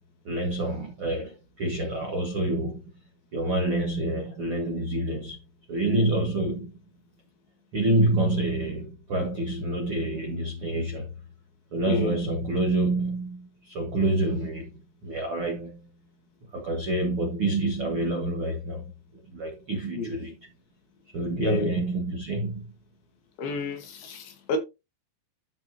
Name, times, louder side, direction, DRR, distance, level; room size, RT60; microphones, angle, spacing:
voice 1, 0.2-2.8 3.3-5.4 5.7-6.7 7.7-11.1 11.7-14.7 15.0-16.0 16.5-20.3 21.1-22.7, right 2 dB, 60° right, 1.4 m, -27 dB
voice 2, 11.9-12.2 20.0-20.3 21.4-21.7 23.4-24.6, left 3 dB, 65° left, 3.5 m, -31 dB
12.5 x 5.8 x 2.9 m
omnidirectional pair, 5.0 m